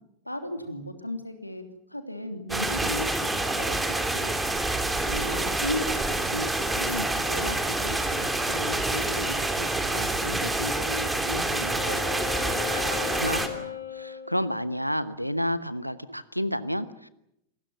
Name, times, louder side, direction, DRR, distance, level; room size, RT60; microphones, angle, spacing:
voice 1, 0.2-1.6 1.9-4.4 5.0-12.1, left 1 dB, 90° left, 7 dB, 2.9 m, -36 dB
sound 1, 2.5-13.5, right 2 dB, 5° right, 3.1 m, -27 dB
Wind instrument woodwind instrument, 10.5-14.9, left 8 dB, 75° left, 3.4 m, -38 dB
voice 2, 12.6-17.1, equal, 90° right, 16 dB, 1.0 m, -31 dB
27.0 x 19.5 x 7.7 m, 0.80 s
figure-of-eight pair, 90°, 0 cm